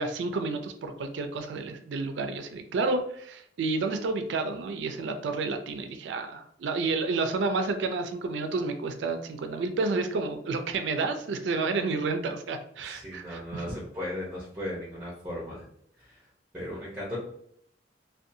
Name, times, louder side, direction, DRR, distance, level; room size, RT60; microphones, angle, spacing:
voice 1, 0.0-13.6, right 3 dB, 70° right, 7 dB, 0.3 m, -30 dB
voice 2, 12.9-15.6 16.0-16.2 16.5-17.2, left 1 dB, 10° right, -5 dB, 0.6 m, -36 dB
2.6 x 2.2 x 2.6 m, 0.67 s
head